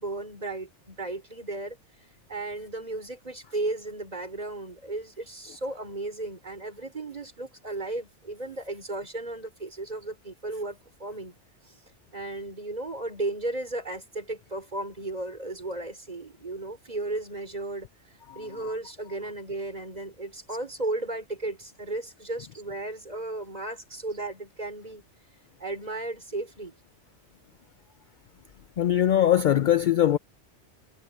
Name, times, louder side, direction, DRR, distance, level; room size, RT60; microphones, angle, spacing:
voice 1, 0.0-1.8 2.3-11.3 11.6-11.8 12.1-17.9 18.4-25.0 25.6-26.8, right 2 dB, 35° right, 4.0 m, -35 dB
voice 2, 28.8-30.2, left 11 dB, 60° left, 0.5 m, -21 dB
omnidirectional pair, 1.2 m